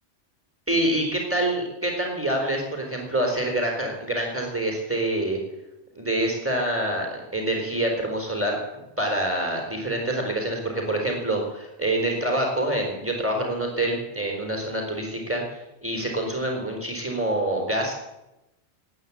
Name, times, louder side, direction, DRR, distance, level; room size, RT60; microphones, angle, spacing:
voice 1, 0.7-5.4 5.9-8.6 9.0-15.4 15.8-17.9, right 1 dB, 10° right, 1 dB, 4.0 m, -26 dB
18.5 x 9.3 x 8.3 m, 0.94 s
omnidirectional pair, 1.2 m